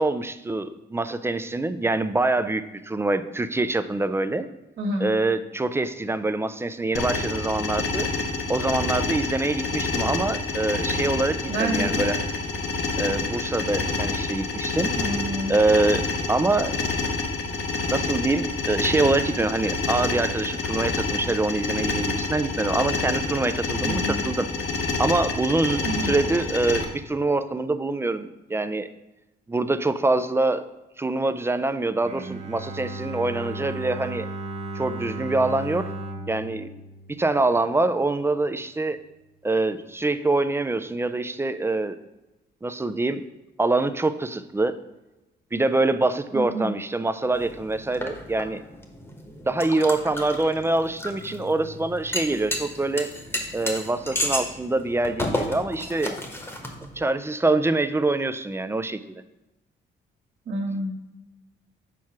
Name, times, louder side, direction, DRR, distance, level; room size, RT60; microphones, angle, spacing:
voice 1, 0.0-4.5 5.0-8.1 8.5-12.2 13.0-14.9 15.5-16.7 17.9-24.5 25.0-28.9 29.5-30.6 31.0-34.3 34.7-35.9 36.3-36.7 37.2-39.0 39.4-42.0 42.6-43.2 43.6-44.8 45.5-48.6 49.5-53.1 53.5-56.1 57.0-59.0, right 2 dB, 10° right, 11 dB, 0.3 m, -25 dB
voice 2, 4.8-5.1 11.5-12.1 15.0-15.6 23.8-24.2 25.8-26.1 46.3-46.7 60.5-60.9, right 1 dB, 60° right, -6 dB, 1.3 m, -28 dB
sound 1, 6.9-26.8, left 3 dB, 65° left, 0.9 m, -28 dB
Bowed string instrument, 32.0-38.0, right 2 dB, 35° right, 0.8 m, -35 dB
sound 2, 47.3-57.0, left 1 dB, 10° left, 1.0 m, -33 dB
4.6 x 4.5 x 5.8 m, 1.0 s
cardioid pair, 90°, 20 cm